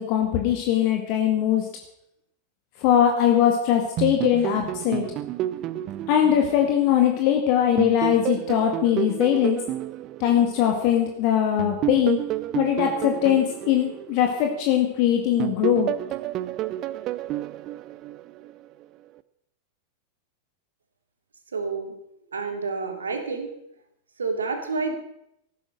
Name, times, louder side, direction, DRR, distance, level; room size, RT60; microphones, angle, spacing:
voice 1, 0.0-1.7 2.8-5.0 6.1-9.6 10.2-12.2 12.6-15.9, left 10 dB, 45° left, 3 dB, 2.1 m, -21 dB
sound 1, 4.0-7.3 7.8-11.0 11.6-14.9 15.4-18.6, right 14 dB, 35° right, 0.7 m, -30 dB
voice 2, 21.5-21.9 22.3-23.5 24.2-24.9, right 4 dB, 70° right, 5 dB, 2.9 m, -29 dB
15.0 x 12.5 x 6.5 m, 0.76 s
figure-of-eight pair, 90°, 0 cm